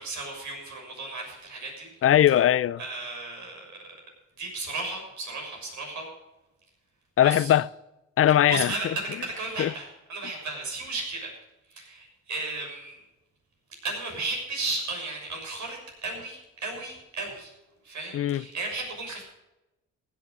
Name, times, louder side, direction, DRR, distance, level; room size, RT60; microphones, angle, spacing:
voice 1, 0.0-1.9 2.8-3.6 4.4-6.1 7.2-7.5 8.5-11.3 11.7-13.0 13.8-17.5 17.8-19.2, right 3 dB, 70° right, 6.6 m, -34 dB
voice 2, 2.0-2.8 7.2-7.7 8.2-8.9 9.6-9.7 18.1-18.4, left 11 dB, 50° left, 0.4 m, -20 dB
16.0 x 8.6 x 6.7 m
cardioid pair, 90°, 30 cm